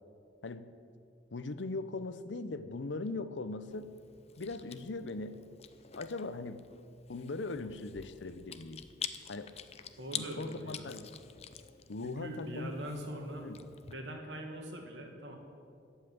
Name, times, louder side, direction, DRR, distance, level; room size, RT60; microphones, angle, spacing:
voice 1, 1.3-3.9 4.4-5.4 6.0-6.7 7.1-8.8 9.3-9.5 10.1-11.1 11.9-12.7 13.4-13.6, left 3 dB, 80° left, 12 dB, 0.7 m, -39 dB
Chewing mastication, 3.7-13.9, left 8 dB, 35° left, 0.6 m, -47 dB
voice 2, 10.0-10.9 12.0-13.5 13.9-15.4, right 1 dB, 75° right, 2 dB, 2.1 m, -42 dB
15.0 x 5.6 x 9.7 m, 2.5 s
head